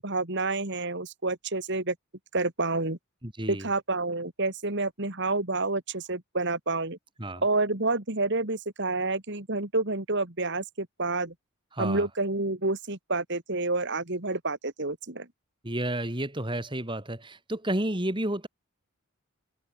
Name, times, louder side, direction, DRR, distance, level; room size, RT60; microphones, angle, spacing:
voice 1, 0.0-2.0 2.3-3.0 3.5-7.0 7.4-11.3 11.8-15.3, right 2 dB, 50° right, 2.7 m, -29 dB
voice 2, 3.2-3.7 7.2-7.4 11.7-12.1 15.6-18.5, right 1 dB, 20° right, 3.0 m, -31 dB
head